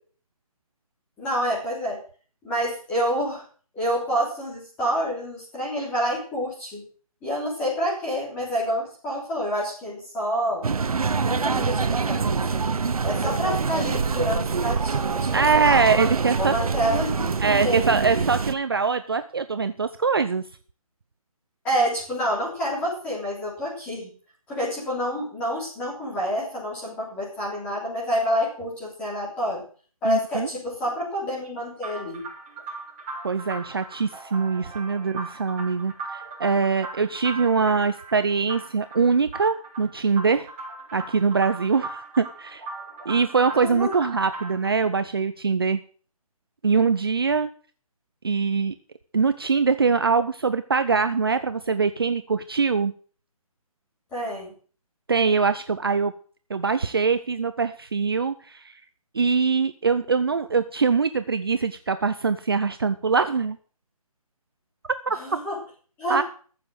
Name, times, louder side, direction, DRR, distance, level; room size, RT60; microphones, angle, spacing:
voice 1, 1.2-2.0 2.4-3.4 3.7-6.8 7.2-10.7 11.2-12.6 13.0-15.3 15.5-15.8 16.4-17.3 17.6-17.8 21.6-24.1 24.5-29.6 30.0-32.2 43.6-43.9 54.1-54.5 65.1-65.6 66.0-66.2, equal, 5° left, -6 dB, 3.7 m, -28 dB
sound 1, 10.6-18.5, right 5 dB, 75° right, 1.1 m, -25 dB
voice 2, 15.3-16.5 17.4-20.4 30.0-30.5 33.2-40.5 40.9-42.6 43.1-45.8 46.6-47.5 48.2-48.7 49.1-52.9 55.1-56.1 56.5-58.7 59.1-63.6 65.1-65.2 66.1-66.2, right 5 dB, 40° right, 11 dB, 0.6 m, -23 dB
sound 2, 31.8-44.7, right 3 dB, 15° right, 4.2 m, -39 dB
14.5 x 7.1 x 7.9 m, 0.43 s
hypercardioid pair, 180°, 19 cm